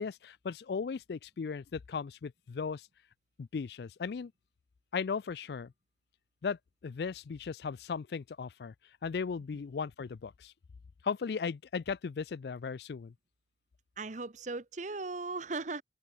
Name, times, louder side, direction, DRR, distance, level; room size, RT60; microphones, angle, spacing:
voice 1, 0.0-2.9 3.4-4.3 4.9-5.7 6.4-8.7 9.0-10.5 11.0-13.1, left 5 dB, 65° left, 0.4 m, -37 dB
voice 2, 14.0-15.8, right 3 dB, 45° right, 0.9 m, -37 dB
open air
head